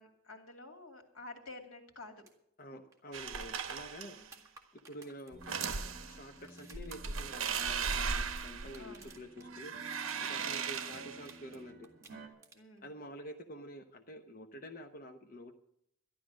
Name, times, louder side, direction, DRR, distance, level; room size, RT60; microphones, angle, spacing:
voice 1, 0.0-2.2 4.1-4.3 8.8-9.2 10.1-10.5 12.5-12.9, left 2 dB, 85° left, 4 dB, 2.5 m, -51 dB
sound 1, 2.2-2.3 2.6-2.7 2.9-9.5 9.7-11.6 11.8-12.8 14.8-14.9, right 4 dB, 15° right, 1.8 m, -58 dB
voice 2, 2.6-4.2 4.9-9.7 10.2-11.9 12.8-15.5, equal, 45° left, 4 dB, 1.0 m, -48 dB
sound 2, 3.1-4.3 5.3-6.2 6.7-9.2 9.5-11.3, right 6 dB, 70° right, 1.0 m, -37 dB
sound 3, 5.3-12.3, right 1 dB, 45° right, 3.0 m, -53 dB
12.5 x 11.5 x 6.3 m, 0.74 s
head